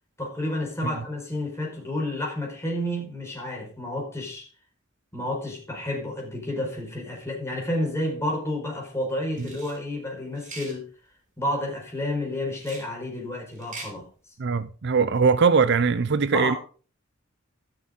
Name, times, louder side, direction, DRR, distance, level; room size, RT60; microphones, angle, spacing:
voice 1, 0.2-4.5 5.1-10.9 11.4-14.1 16.3-16.6, left 1 dB, 15° left, 4.9 m, -30 dB
sound 1, 9.3-9.8 10.4-10.8 12.6-12.9 13.5-13.9, right 3 dB, 40° right, 4.1 m, -41 dB
voice 2, 14.4-16.6, right 5 dB, 55° right, 0.5 m, -21 dB
13.0 x 6.8 x 5.1 m
head